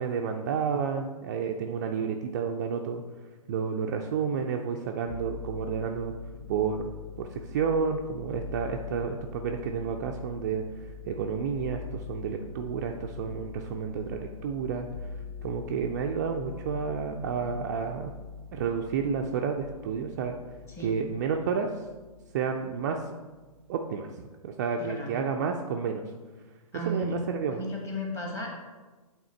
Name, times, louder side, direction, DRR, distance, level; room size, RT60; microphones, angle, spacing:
voice 1, 0.0-3.0 3.5-6.1 6.5-6.9 7.2-14.9 15.4-18.1 18.5-20.4 20.8-21.7 22.3-23.1 23.7-24.1 24.4-26.0 26.9-27.6, right 6 dB, 30° right, 2 dB, 0.4 m, -30 dB
sound 1, 5.1-22.5 22.8-23.6, left 4 dB, 40° left, 0.6 m, -43 dB
voice 2, 24.8-25.1 26.7-27.2 27.5-28.6, equal, 15° left, -1 dB, 1.2 m, -34 dB
8.6 x 3.6 x 4.4 m, 1.3 s
figure-of-eight pair, 120°, 19 cm